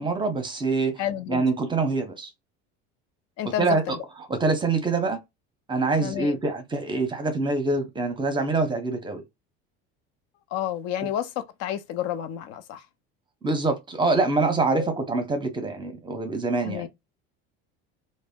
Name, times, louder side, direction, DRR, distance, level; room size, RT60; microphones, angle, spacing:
voice 1, 0.0-1.0 1.3-2.3 3.6-4.0 4.3-5.2 5.7-9.2 13.4-16.9, right 3 dB, 15° right, 0.7 m, -25 dB
voice 2, 1.0-1.4 3.4-4.0 6.0-6.4 10.5-12.8 14.7-14.9 16.6-16.9, left 11 dB, 60° left, 0.6 m, -30 dB
2.1 x 2.0 x 3.5 m
supercardioid pair, 110°, 29 cm